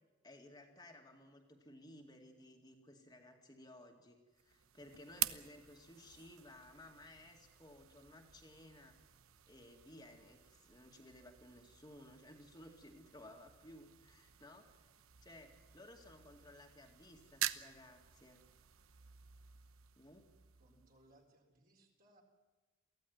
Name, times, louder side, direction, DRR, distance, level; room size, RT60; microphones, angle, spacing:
voice 1, 0.2-9.0 9.5-14.9 15.2-18.4 20.0-20.3, left 1 dB, 20° left, 1 dB, 2.1 m, -58 dB
sound 1, 4.3-21.3, right 12 dB, 80° right, 0.9 m, -48 dB
voice 2, 20.6-22.2, right 1 dB, 40° right, 2 dB, 4.0 m, -68 dB
23.5 x 16.0 x 9.6 m, 1.3 s
head